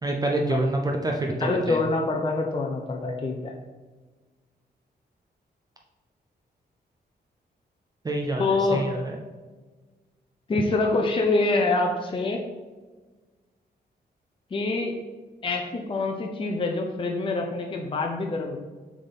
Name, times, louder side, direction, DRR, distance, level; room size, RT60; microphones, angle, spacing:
voice 1, 0.0-1.8 8.0-9.2, right 2 dB, 20° right, 1 dB, 0.5 m, -27 dB
voice 2, 1.4-3.5 8.4-8.9 10.5-12.4 14.5-15.0 15.4-18.6, left 3 dB, 30° left, 2 dB, 0.6 m, -25 dB
6.9 x 3.6 x 4.1 m, 1.3 s
wide cardioid pair, 130°, 18 cm